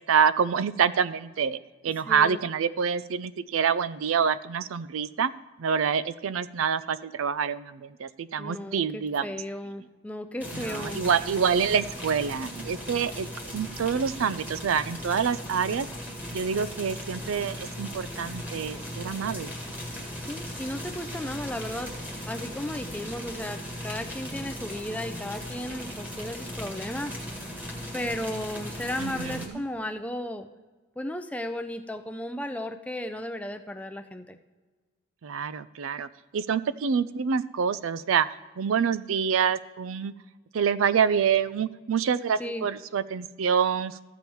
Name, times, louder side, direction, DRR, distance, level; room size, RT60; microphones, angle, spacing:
voice 1, 0.0-1.6 1.8-5.3 5.6-9.4 10.5-15.9 16.3-19.5 29.0-29.6 35.2-38.3 38.6-40.1 40.5-44.0, right 7 dB, 85° right, 15 dB, 0.4 m, -26 dB
voice 2, 2.1-2.4 8.4-11.0 20.3-21.9 22.3-27.3 27.9-30.5 31.0-34.4 42.4-42.7, left 1 dB, 5° left, 7 dB, 0.4 m, -35 dB
sound 1, 10.4-29.5, equal, 10° right, 1.6 m, -38 dB
14.5 x 7.1 x 4.6 m, 1.3 s
head